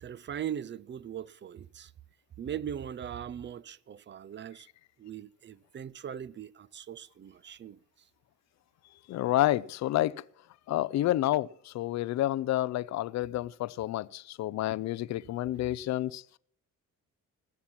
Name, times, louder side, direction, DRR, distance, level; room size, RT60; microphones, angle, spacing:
voice 1, 0.0-1.9 2.4-4.7 5.0-7.8, right 9 dB, 40° right, 0.5 m, -40 dB
voice 2, 9.1-10.2 10.7-16.2, left 14 dB, 65° left, 0.5 m, -29 dB
19.0 x 7.4 x 5.8 m
cardioid pair, 90°, 30 cm